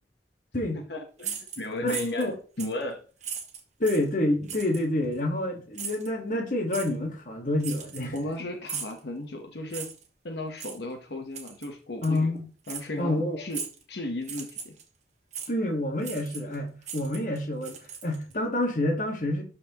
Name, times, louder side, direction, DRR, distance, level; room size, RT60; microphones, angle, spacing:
voice 1, 0.9-2.3 2.6-3.0 8.1-9.9 10.2-12.3 12.7-13.6 13.9-14.8, left 1 dB, 75° left, 1.0 m, -35 dB
sound 1, 1.2-2.3 2.6-2.8 3.2-4.1 4.5-4.8 5.7-6.1 6.7-6.9 7.6-8.3 8.7-9.0 9.7-10.1 10.6-10.8 11.3-11.7 12.0-12.2 12.7-12.9 13.5-13.8 14.2-14.8 15.3-15.5 16.0-16.6 16.8-18.3, right 7 dB, 40° right, 1.3 m, -38 dB
voice 2, 1.8-2.4 3.8-8.1 12.0-12.4 13.0-13.4 15.5-19.4, left 1 dB, 50° left, 1.4 m, -28 dB
12.5 x 4.2 x 2.9 m
head